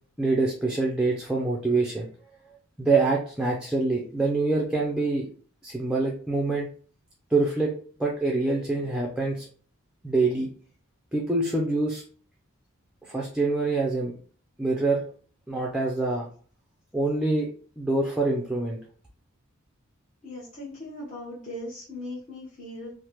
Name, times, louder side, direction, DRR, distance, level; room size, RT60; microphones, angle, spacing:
voice 1, 0.2-2.1 2.8-5.3 5.6-6.7 7.3-7.7 8.0-9.5 10.0-10.5 11.1-12.0 13.0-14.1 14.6-15.0 15.5-16.3 16.9-17.5 17.8-18.8, right 3 dB, 5° right, -2 dB, 0.4 m, -25 dB
voice 2, 20.2-22.9, left 1 dB, 35° left, -9 dB, 0.9 m, -38 dB
3.1 x 2.0 x 2.9 m, 0.43 s
head